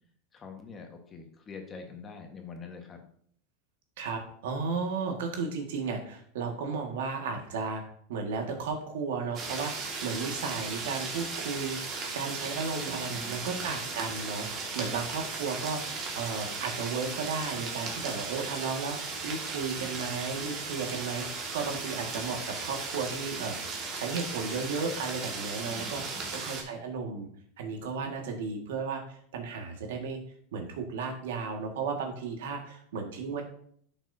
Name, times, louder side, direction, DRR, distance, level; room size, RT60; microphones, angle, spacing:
voice 1, 0.3-3.0 13.1-13.9 25.6-26.4, left 5 dB, 25° left, 3 dB, 1.5 m, -45 dB
voice 2, 4.0-7.8 8.1-23.6 23.9-26.0 26.4-27.3 27.6-30.2 30.5-33.4, right 5 dB, 85° right, 2 dB, 1.9 m, -34 dB
sound 1, 9.3-26.6, right 4 dB, 35° right, 2.1 m, -36 dB
11.0 x 6.1 x 2.8 m, 0.62 s
supercardioid pair, 135°, 0 cm